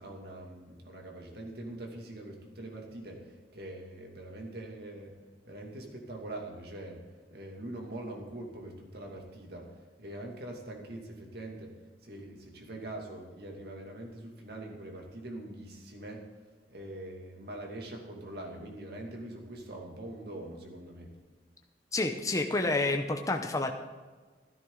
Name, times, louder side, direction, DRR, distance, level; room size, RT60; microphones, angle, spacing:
voice 1, 0.0-5.1 5.5-11.8 12.0-16.3 16.7-21.1, right 1 dB, 65° right, 1 dB, 2.6 m, -43 dB
voice 2, 21.9-23.7, left 2 dB, 20° left, 4 dB, 0.8 m, -29 dB
14.0 x 12.5 x 4.0 m, 1.4 s
head